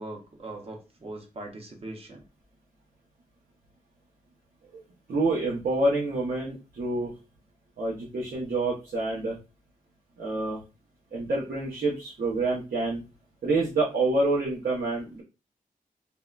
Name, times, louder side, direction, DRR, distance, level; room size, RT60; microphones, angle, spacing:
voice 1, 0.0-2.2, right 2 dB, 40° right, 2 dB, 0.7 m, -40 dB
voice 2, 5.1-7.1 7.8-9.4 10.2-10.6 11.1-13.0 13.4-15.2, right 2 dB, 80° right, -4 dB, 0.8 m, -27 dB
3.5 x 2.1 x 2.4 m, 0.29 s
wide cardioid pair, 145°, 15 cm